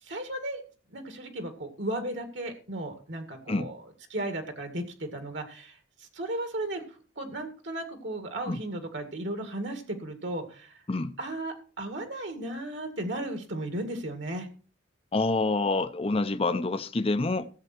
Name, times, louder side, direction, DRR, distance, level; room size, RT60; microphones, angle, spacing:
voice 1, 0.0-0.6 0.9-3.8 4.1-10.8 11.2-14.5, right 1 dB, 65° right, 2.2 m, -35 dB
voice 2, 15.1-17.5, left 3 dB, 30° left, 0.6 m, -27 dB
16.0 x 7.7 x 4.5 m
head